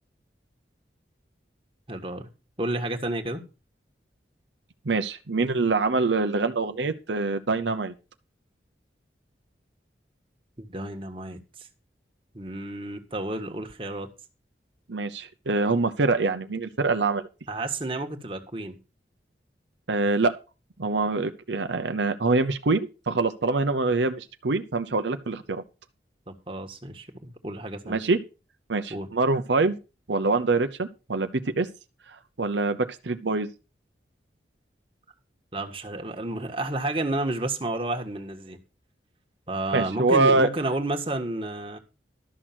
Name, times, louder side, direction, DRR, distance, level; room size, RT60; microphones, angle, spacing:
voice 1, 1.9-2.3 2.6-3.4 10.6-11.7 12.3-14.1 17.5-18.8 26.3-28.0 28.9-29.1 35.5-38.6 39.5-41.8, right 2 dB, 30° right, 4 dB, 1.6 m, -31 dB
voice 2, 4.8-7.9 14.9-17.2 19.9-20.3 20.8-25.6 27.9-28.2 28.7-29.8 30.1-31.7 32.4-33.5 39.7-40.5, right 3 dB, 85° right, 9 dB, 0.8 m, -24 dB
12.5 x 6.3 x 5.9 m, 0.32 s
head